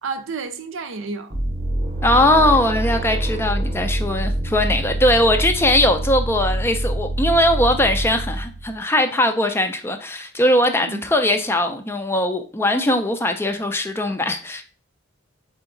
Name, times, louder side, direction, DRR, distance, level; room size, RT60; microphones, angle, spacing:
voice 1, 0.0-1.3 2.1-2.6 3.0-3.2 10.8-11.0, right 4 dB, 75° right, 0.6 m, -31 dB
sound 1, 1.3-8.7, right 1 dB, 30° right, 0.7 m, -25 dB
voice 2, 2.0-14.6, left 1 dB, 10° left, 0.3 m, -20 dB
3.9 x 3.4 x 3.7 m
head